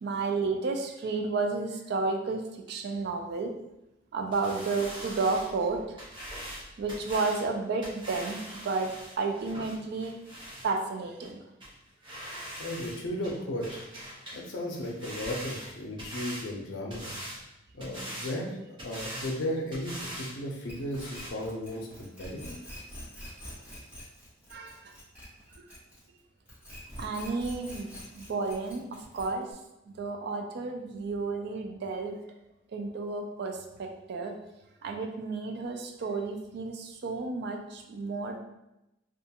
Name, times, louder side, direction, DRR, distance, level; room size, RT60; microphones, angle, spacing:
voice 1, 0.0-2.4 2.7-3.5 4.1-6.0 6.8-8.4 8.6-10.2 10.6-11.4 24.5-24.8 25.6-25.7 27.0-29.5 30.0-32.2 32.7-34.3 34.8-38.4, right 3 dB, 60° right, 3 dB, 0.3 m, -32 dB
sound 1, 4.3-10.7 11.2-11.3 11.6-11.7 12.0-13.0 13.2-14.4 14.7-16.5 16.9-17.4 17.8-18.3 18.8-19.4 19.7-20.3 20.6-20.7 20.9-21.3, equal, 25° right, 0.7 m, -42 dB
voice 2, 12.2-13.8 14.3-17.1 17.7-22.5, left 1 dB, 75° left, 0 dB, 0.5 m, -35 dB
sound 2, 20.7-26.2 26.5-29.5, equal, 5° right, 1.0 m, -45 dB
2.4 x 2.2 x 2.8 m, 0.90 s
head